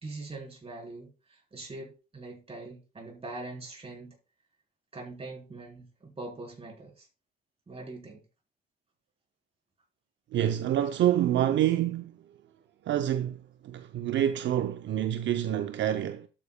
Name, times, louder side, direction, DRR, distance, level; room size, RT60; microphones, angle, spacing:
voice 1, 0.0-4.1 4.9-7.1 7.7-8.2, right 2 dB, 30° right, 3.7 m, -42 dB
voice 2, 10.3-12.2 12.8-16.3, right 11 dB, 65° right, 0.6 m, -27 dB
12.0 x 8.6 x 2.2 m
cardioid pair, 90°, 20 cm